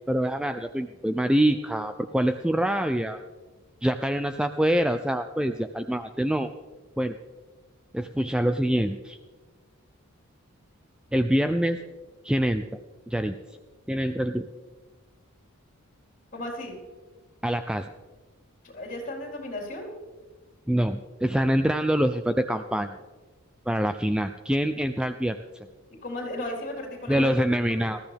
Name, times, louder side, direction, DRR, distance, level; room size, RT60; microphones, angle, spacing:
voice 1, 0.1-3.2 3.8-6.5 7.0-7.2 7.9-9.2 11.1-11.8 12.2-12.6 13.1-13.4 13.9-14.5 17.4-17.9 20.7-23.0 23.7-25.4 27.1-28.0, equal, 5° right, 8 dB, 0.3 m, -25 dB
voice 2, 16.3-16.8 18.6-19.9 26.0-27.4 27.7-27.9, left 1 dB, 35° left, -1 dB, 4.2 m, -35 dB
20.0 x 14.0 x 3.5 m, 1.3 s
head